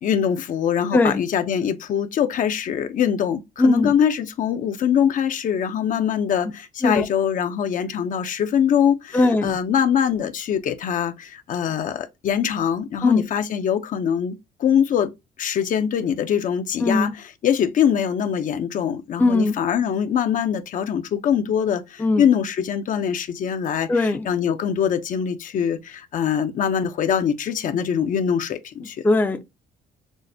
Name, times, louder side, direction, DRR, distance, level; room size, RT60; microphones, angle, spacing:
voice 1, 0.0-15.1 15.4-17.1 17.4-29.0, left 8 dB, 50° left, 0.6 m, -23 dB
voice 2, 0.9-1.2 3.6-3.9 6.8-7.1 9.1-9.6 13.0-13.2 16.8-17.1 19.2-19.6 22.0-22.2 23.9-24.3 29.0-29.4, left 2 dB, 10° left, 0.5 m, -19 dB
6.1 x 2.1 x 2.7 m
cardioid pair, 110°, 17 cm